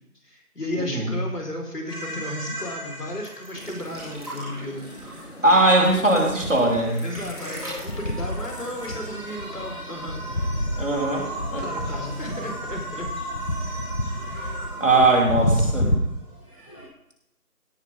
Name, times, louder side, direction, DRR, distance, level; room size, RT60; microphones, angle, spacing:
voice 1, 0.2-4.9 7.0-10.2 11.6-13.1, left 1 dB, 80° left, 1 dB, 5.0 m, -33 dB
sound 1, 1.9-5.1 7.4-16.8, right 1 dB, 20° left, 2.9 m, -38 dB
sound 2, 3.2-9.7 9.9-10.0 10.3-11.1 11.9-12.0, equal, 25° right, 3.3 m, -41 dB
sound 3, 3.5-16.0, left 1 dB, 45° left, 1.4 m, -31 dB
voice 2, 5.4-7.0 10.8-11.6 14.3-14.5 14.8-15.9, right 2 dB, 55° right, 0 dB, 3.5 m, -20 dB
17.0 x 9.9 x 3.8 m, 0.80 s
figure-of-eight pair, 180°, 46 cm